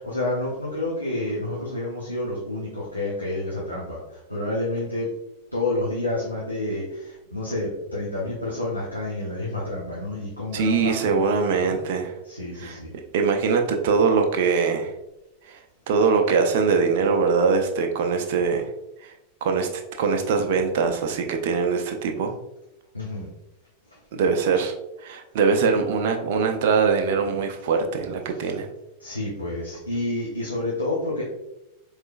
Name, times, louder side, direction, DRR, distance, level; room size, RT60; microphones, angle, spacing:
voice 1, 0.0-5.1 5.5-11.2 11.6-11.7 12.3-12.9 22.9-23.3 29.0-31.2, left 2 dB, 90° left, -6 dB, 0.8 m, -29 dB
voice 2, 10.5-12.1 12.6-12.8 13.1-14.9 15.5-15.6 15.9-18.7 19.0-19.1 19.4-19.7 20.0-22.3 24.1-24.7 25.0-28.7, right 5 dB, 50° right, 4 dB, 0.6 m, -22 dB
4.4 x 3.2 x 2.4 m, 0.91 s
figure-of-eight pair, 90°, 0 cm